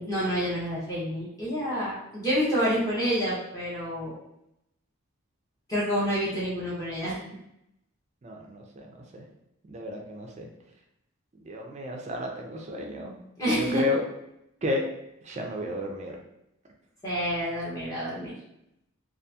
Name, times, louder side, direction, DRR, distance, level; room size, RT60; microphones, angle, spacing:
voice 1, 0.0-4.1 5.7-7.2 13.4-13.8 17.0-18.3, equal, 15° left, -8 dB, 0.6 m, -28 dB
voice 2, 8.2-9.2 9.6-10.5 11.4-13.1 13.4-14.1 14.6-14.9 15.2-16.2, left 2 dB, 30° right, 1 dB, 0.3 m, -32 dB
2.7 x 2.4 x 2.2 m, 0.81 s
head